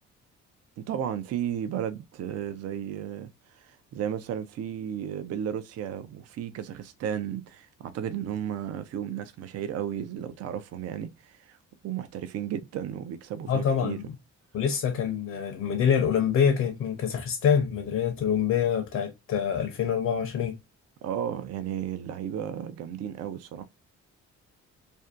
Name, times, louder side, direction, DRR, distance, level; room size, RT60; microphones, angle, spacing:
voice 1, 0.8-11.6 11.8-14.0 21.0-23.6, right 9 dB, 55° right, 0.4 m, -34 dB
voice 2, 13.5-14.2 14.5-20.6, left 7 dB, 60° left, 0.6 m, -26 dB
2.6 x 2.2 x 2.3 m
cardioid pair, 90°, 30 cm